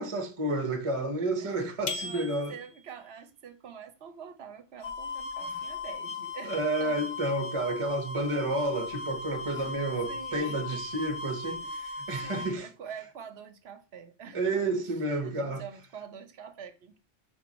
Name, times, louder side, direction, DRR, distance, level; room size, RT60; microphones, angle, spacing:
voice 1, 0.0-2.5 5.5-5.6 6.5-12.7 14.3-15.6, right 2 dB, 30° right, 0.9 m, -30 dB
voice 2, 1.4-7.0 9.5-9.7 10.1-10.8 11.6-11.8 12.2-14.9 15.2-17.0, right 7 dB, 65° right, 0.9 m, -46 dB
sound 1, 1.9-3.0, left 4 dB, 50° left, 0.8 m, -37 dB
sound 2, 4.8-12.5, left 3 dB, 90° left, 1.2 m, -38 dB
4.6 x 4.2 x 5.1 m
omnidirectional pair, 1.2 m